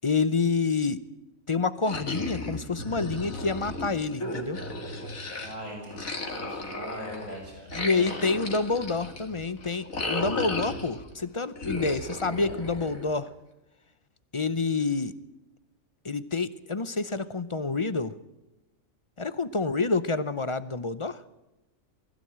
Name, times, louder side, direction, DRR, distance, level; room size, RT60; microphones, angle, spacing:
voice 1, 0.0-1.0 1.5-4.6 7.7-13.3 14.3-15.1 16.0-18.1 19.2-21.2, left 4 dB, 35° left, 15 dB, 0.6 m, -28 dB
sound 1, 1.9-5.5 5.9-11.1 11.6-13.3, left 2 dB, 85° left, 2.9 m, -35 dB
voice 2, 5.4-8.4 12.3-12.6 17.1-17.2, right 1 dB, 70° right, -1 dB, 7.6 m, -41 dB
21.0 x 15.5 x 8.7 m, 0.98 s
omnidirectional pair, 1.4 m